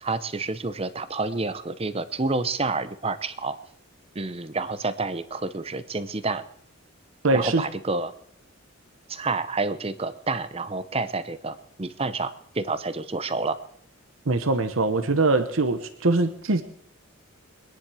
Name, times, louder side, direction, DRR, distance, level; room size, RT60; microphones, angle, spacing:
voice 1, 0.0-3.6 4.1-6.4 7.3-8.1 9.1-13.6, right 3 dB, 30° right, 13 dB, 0.7 m, -29 dB
voice 2, 7.2-7.6 14.2-16.6, right 3 dB, 75° right, 9 dB, 1.0 m, -22 dB
22.5 x 10.5 x 4.9 m, 0.68 s
head